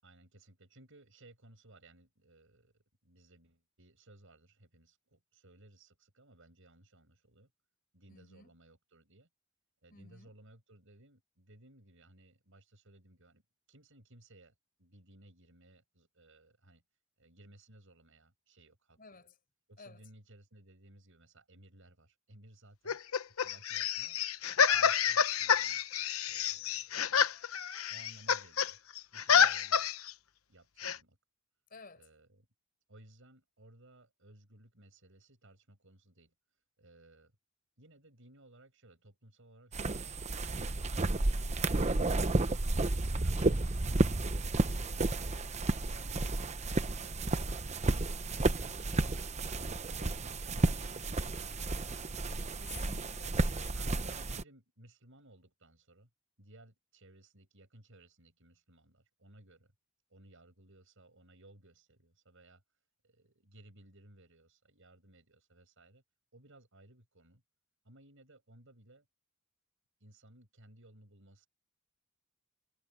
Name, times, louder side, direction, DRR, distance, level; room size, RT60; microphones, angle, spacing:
voice 1, 0.0-7.5 7.9-9.3 9.8-13.4 13.7-16.8 17.2-19.3 19.7-24.2 24.7-25.8 26.2-27.0 27.9-28.8 29.1-29.9 30.5-31.2 32.0-32.5 32.9-37.3 37.8-40.1 43.0-43.4 43.9-45.4 45.9-49.5 49.9-52.3 53.7-56.1 56.4-59.7 60.1-62.6 63.0-66.0 66.3-67.4 67.8-69.1 70.0-71.5, right 1 dB, 65° right, 7.4 m, -60 dB
voice 2, 8.1-8.5 9.9-10.3 19.0-19.3 19.8-20.0 29.3-29.6 31.7-32.1 52.6-54.2, left 4 dB, 45° left, 5.2 m, -53 dB
sound 1, 22.9-28.7 29.0-30.1 30.8-31.0, left 7 dB, 80° left, 1.0 m, -29 dB
sound 2, 39.7-54.4, right 2 dB, 30° right, 0.9 m, -32 dB
head